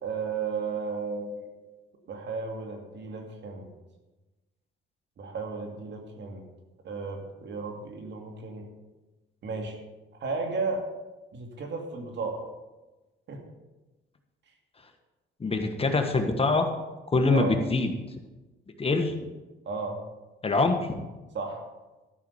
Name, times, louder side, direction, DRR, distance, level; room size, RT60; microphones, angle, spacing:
voice 1, 0.0-1.5 2.1-3.7 5.2-6.4 6.8-8.7 9.4-9.8 10.2-10.8 11.3-12.4 13.3-13.5 17.3-17.5 19.7-20.0 21.3-21.6, right 4 dB, 65° right, 2 dB, 2.5 m, -34 dB
voice 2, 15.4-16.7 17.1-17.9 18.8-19.1 20.4-21.0, left 3 dB, 30° left, 5 dB, 1.5 m, -24 dB
13.0 x 5.9 x 7.1 m, 1.1 s
cardioid pair, 90°, 20 cm